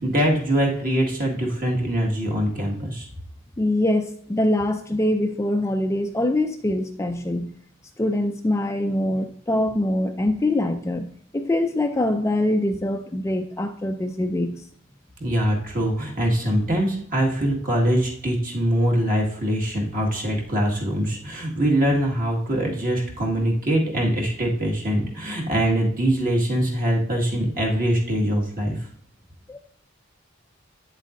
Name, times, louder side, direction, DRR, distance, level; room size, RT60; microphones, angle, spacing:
voice 1, 0.0-3.1 15.2-28.8, right 1 dB, 45° right, -1 dB, 1.8 m, -23 dB
voice 2, 3.6-7.5 8.0-14.6 29.5-29.6, left 1 dB, 15° left, 6 dB, 0.3 m, -24 dB
8.3 x 7.3 x 2.6 m, 0.64 s
head